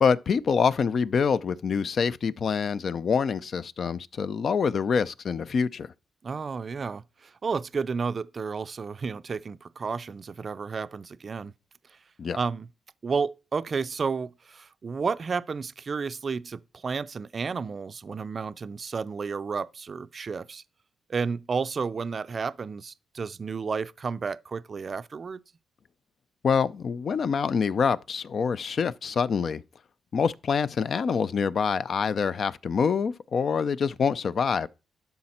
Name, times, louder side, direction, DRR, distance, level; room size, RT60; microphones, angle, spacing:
voice 1, 0.0-5.9 12.2-12.4 26.4-29.6 30.1-34.7, left 6 dB, 50° left, 0.4 m, -26 dB
voice 2, 6.2-11.5 12.3-12.7 13.0-20.6 21.1-25.4, right 5 dB, 40° right, 0.4 m, -32 dB
12.0 x 5.7 x 4.3 m
cardioid pair, 115°, 0 cm